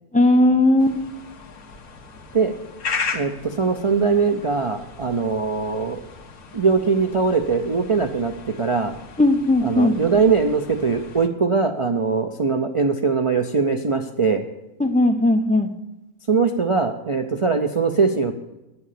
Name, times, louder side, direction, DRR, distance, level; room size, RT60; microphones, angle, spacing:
voice 1, 0.1-1.0 9.2-10.0 14.8-15.7, left 1 dB, 10° left, 4 dB, 0.5 m, -17 dB
sound 1, 0.8-11.3, left 5 dB, 75° left, 1.6 m, -36 dB
voice 2, 3.1-6.0 6.5-8.9 9.6-14.4 16.3-18.3, right 4 dB, 60° right, 5 dB, 0.3 m, -21 dB
10.0 x 7.0 x 8.5 m, 0.99 s
omnidirectional pair, 1.6 m